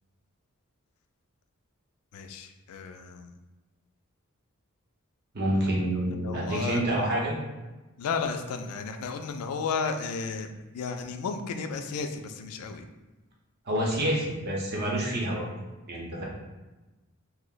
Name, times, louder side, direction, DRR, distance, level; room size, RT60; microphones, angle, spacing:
voice 1, 2.1-3.3 6.1-6.8 8.0-10.5 10.7-12.9, left 5 dB, 85° left, 6 dB, 0.3 m, -33 dB
voice 2, 5.3-7.3 13.7-15.4 15.9-16.2, right 1 dB, 45° right, -3 dB, 0.7 m, -28 dB
2.7 x 2.0 x 3.8 m, 1.1 s
head